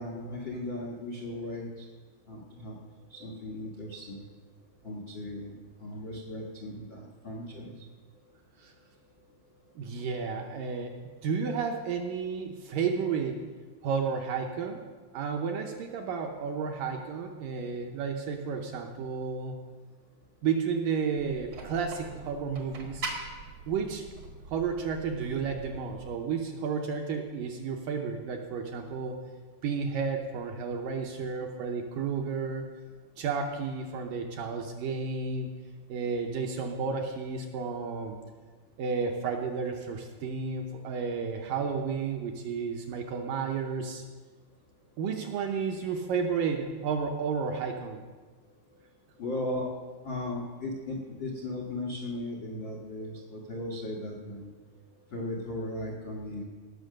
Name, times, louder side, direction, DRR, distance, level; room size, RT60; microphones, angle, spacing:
voice 1, 0.0-1.9 2.3-2.7 3.1-4.2 4.8-5.5 5.8-7.7 49.2-49.7 50.0-54.5 55.1-56.4, left 1 dB, 85° left, -1 dB, 1.0 m, -37 dB
voice 2, 9.8-11.0 11.2-13.4 13.8-14.8 15.1-19.5 20.4-23.1 23.7-24.1 24.5-29.2 29.6-32.7 33.2-35.5 35.9-38.2 38.8-44.1 45.0-48.0, right 5 dB, 75° right, 3 dB, 2.1 m, -32 dB
sound 1, 21.2-26.2, right 3 dB, 55° right, 1.2 m, -42 dB
18.0 x 6.3 x 6.4 m, 1.4 s
omnidirectional pair, 4.7 m